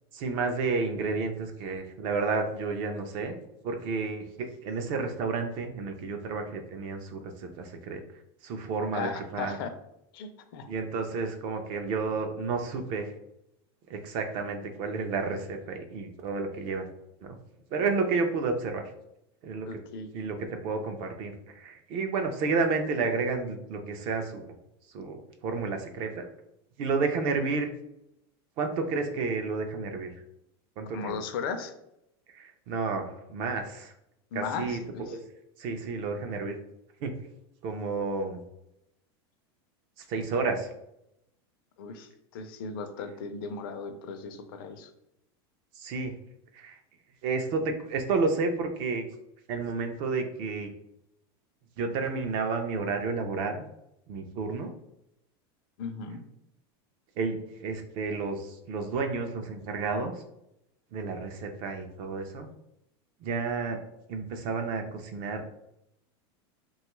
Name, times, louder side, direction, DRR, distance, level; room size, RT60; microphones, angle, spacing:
voice 1, 0.1-3.4 3.6-8.0 8.4-9.6 10.7-13.2 13.9-16.9 17.2-17.4 17.7-18.9 19.4-19.8 20.1-24.4 24.9-26.3 26.8-27.7 28.6-30.1 30.8-31.2 32.3-33.9 34.3-34.8 35.1-35.2 35.6-36.6 37.0-37.2 37.6-38.4 40.0-40.7 45.7-46.1 46.5-46.8 47.2-49.0 49.5-50.7 51.8-53.6 54.1-54.7 57.2-60.1 60.9-62.5 63.2-63.8 64.1-65.4, right 4 dB, 40° right, 5 dB, 0.4 m, -31 dB
voice 2, 8.9-9.7 10.1-10.7 19.7-20.1 30.9-31.7 34.3-35.2 41.8-44.9 55.8-56.2, left 5 dB, 60° left, 8 dB, 0.4 m, -36 dB
2.9 x 2.3 x 3.0 m, 0.82 s
supercardioid pair, 165°, 13 cm